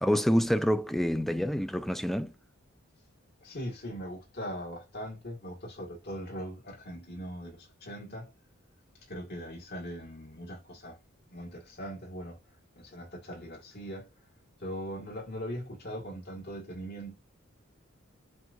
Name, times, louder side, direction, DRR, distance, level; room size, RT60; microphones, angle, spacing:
voice 1, 0.0-2.3, equal, ahead, 0.3 m, -27 dB
voice 2, 3.4-8.3 9.1-11.0 11.3-14.1 14.6-17.1, equal, 50° left, 1.9 m, -40 dB
7.4 x 2.6 x 2.6 m
head